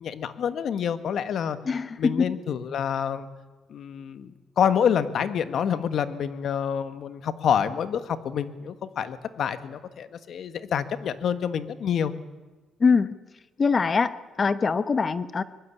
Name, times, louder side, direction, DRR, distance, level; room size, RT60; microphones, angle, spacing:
voice 1, 0.0-1.6 2.0-3.3 3.7-12.1, left 8 dB, 65° left, 1.7 m, -27 dB
voice 2, 1.7-2.3 12.8-13.1 13.6-15.4, left 5 dB, 35° left, 1.2 m, -23 dB
24.5 x 21.5 x 8.5 m
cardioid pair, 90°, 0 cm